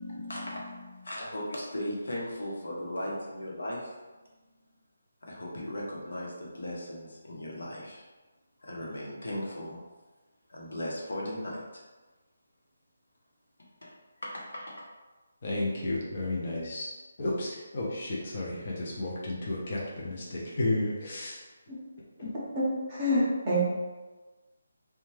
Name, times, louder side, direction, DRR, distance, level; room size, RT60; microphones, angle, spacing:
voice 1, 0.0-3.9 5.3-8.0 8.6-9.8 10.5-11.8 13.8-13.9 14.2-14.9, left 1 dB, 80° left, -3 dB, 0.8 m, -37 dB
voice 2, 15.4-16.9 17.2-21.4 22.2-22.3, left 2 dB, 30° left, -5 dB, 0.5 m, -32 dB
voice 3, 22.6-23.6, equal, 15° right, -9 dB, 0.6 m, -27 dB
2.7 x 2.2 x 3.1 m, 1.2 s
hypercardioid pair, 180°, 0 cm